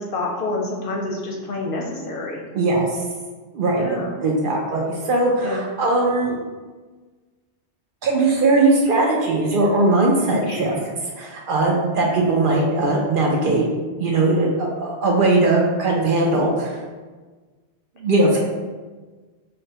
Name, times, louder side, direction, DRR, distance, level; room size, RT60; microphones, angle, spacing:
voice 1, 0.0-2.4 3.7-4.1 5.4-5.6 10.5-10.7, left 2 dB, 60° left, -1 dB, 0.7 m, -28 dB
voice 2, 2.5-2.9 3.5-3.8 4.2-6.4 8.0-10.7 11.2-13.6 14.0-16.8 18.0-18.4, right 2 dB, 60° right, -1 dB, 0.6 m, -19 dB
4.9 x 2.1 x 2.9 m, 1.3 s
omnidirectional pair, 1.1 m